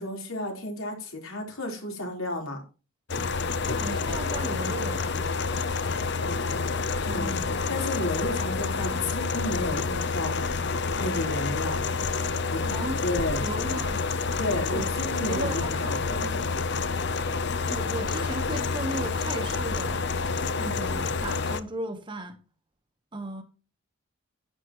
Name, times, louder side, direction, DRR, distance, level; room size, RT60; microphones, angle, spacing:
voice 1, 0.0-2.6 6.2-10.4 11.0-11.8 12.5-12.6 13.0-13.4 14.4-16.2, left 1 dB, 80° left, 4.2 m, -32 dB
sound 1, 3.1-21.6, left 4 dB, 55° left, 0.8 m, -28 dB
voice 2, 3.7-5.1 7.2-7.6 12.6-13.0 13.4-14.0 14.7-14.9 15.2-16.6 17.3-20.1 20.6-22.4 23.1-23.4, right 1 dB, 20° right, 1.2 m, -36 dB
11.0 x 10.0 x 3.1 m
head